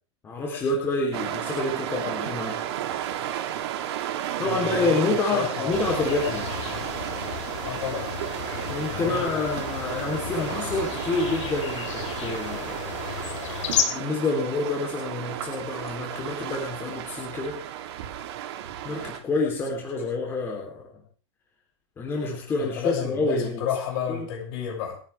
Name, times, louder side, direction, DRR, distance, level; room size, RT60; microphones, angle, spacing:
voice 1, 0.2-2.6 4.4-6.5 8.7-12.8 13.9-17.6 18.8-21.0 22.0-23.7 24.1-24.3, left 3 dB, 15° left, -1 dB, 3.5 m, -28 dB
sound 1, 1.1-19.2, right 11 dB, 60° right, 3.1 m, -33 dB
voice 2, 4.4-5.9 7.6-8.1 8.9-9.5 10.4-10.5 22.5-25.0, left 8 dB, 45° left, 0 dB, 7.0 m, -32 dB
sound 2, 5.7-13.8, left 9 dB, 80° left, 4.4 m, -33 dB
30.0 x 10.0 x 3.5 m, 0.38 s
supercardioid pair, 170°, 16 cm